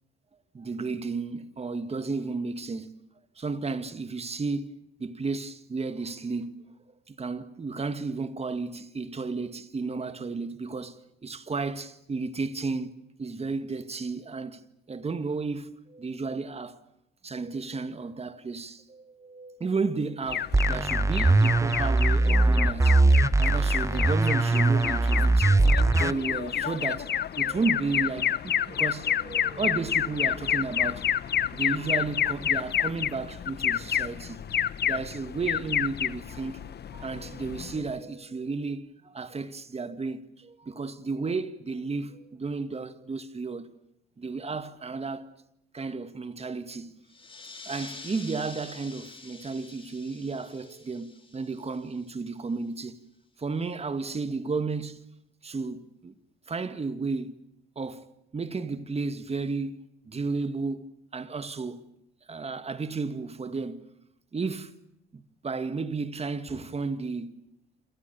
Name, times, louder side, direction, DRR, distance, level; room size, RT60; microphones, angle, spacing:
voice 1, 0.5-2.9 3.4-6.6 7.1-12.9 13.2-14.6 14.9-16.8 17.2-22.9 23.4-25.6 25.9-31.1 31.5-34.4 34.8-36.6 36.9-43.7 44.2-45.3 45.7-46.9 47.7-53.0 53.4-55.0 55.4-56.1 56.5-57.3 57.8-58.1 58.3-60.9 61.1-61.9 62.3-63.8 64.3-64.7 65.1-67.3, right 4 dB, 30° right, 1.9 m, -33 dB
Alarm, 20.3-37.9, left 9 dB, 55° left, 1.1 m, -29 dB
sound 1, 20.5-26.1, right 3 dB, 15° right, 1.1 m, -21 dB
sound 2, 47.1-52.3, left 3 dB, 25° left, 4.4 m, -47 dB
29.0 x 27.0 x 6.9 m
cardioid pair, 90°, 20 cm